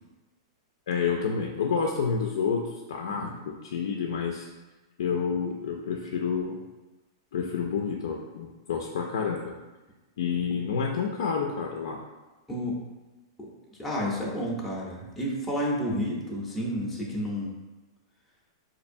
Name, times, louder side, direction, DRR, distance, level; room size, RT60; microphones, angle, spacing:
voice 1, 0.9-4.5 5.0-6.6 7.3-9.5 10.2-12.0, left 6 dB, 80° left, 1 dB, 0.4 m, -29 dB
voice 2, 12.5-12.8 13.4-13.5 13.8-17.5, equal, ahead, -6 dB, 0.6 m, -30 dB
4.3 x 2.6 x 2.5 m, 1.1 s
supercardioid pair, 150°, 2 cm